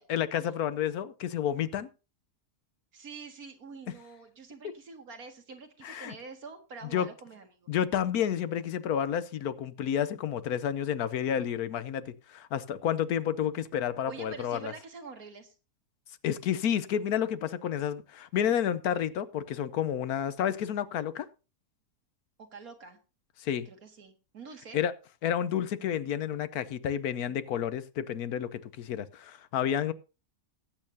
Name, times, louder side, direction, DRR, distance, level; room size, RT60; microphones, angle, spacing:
voice 1, 0.1-1.9 5.8-6.1 6.9-7.1 7.7-14.7 16.2-21.3 23.4-23.7 24.7-24.9 25.2-29.9, left 9 dB, 70° left, 1.2 m, -30 dB
voice 2, 2.9-7.7 14.1-15.5 22.4-23.0 23.7-24.8, right 4 dB, 60° right, 2.1 m, -46 dB
18.5 x 8.6 x 2.7 m
omnidirectional pair, 1.7 m